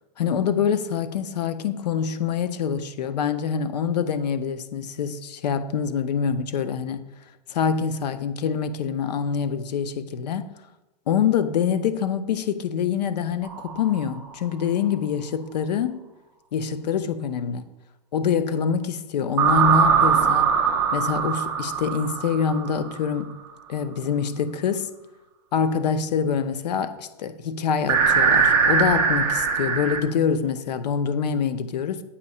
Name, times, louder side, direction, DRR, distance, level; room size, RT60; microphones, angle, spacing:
voice 1, 0.2-7.0 7.5-10.5 11.1-16.0 16.5-17.7 18.1-20.5 20.9-23.4 23.7-24.9 25.5-32.0, left 7 dB, 80° left, 0.6 m, -25 dB
sound 1, 13.4-14.3 19.4-23.0 27.9-30.0, right 6 dB, 10° right, 0.4 m, -21 dB
8.3 x 2.8 x 5.4 m
supercardioid pair, 175°, 21 cm